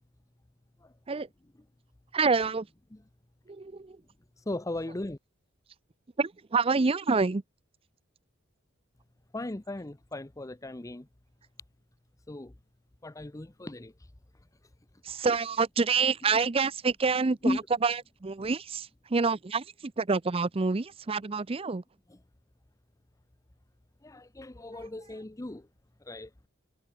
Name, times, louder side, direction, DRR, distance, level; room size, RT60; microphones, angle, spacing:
voice 1, 2.1-2.7 3.5-4.0 6.2-7.4 15.0-21.8, right 4 dB, 30° right, 0.5 m, -27 dB
voice 2, 4.4-5.2 9.3-11.1 12.3-12.5 13.0-13.9 17.4-17.6 24.0-25.7 26.0-26.3, left 1 dB, 15° left, 0.6 m, -36 dB
head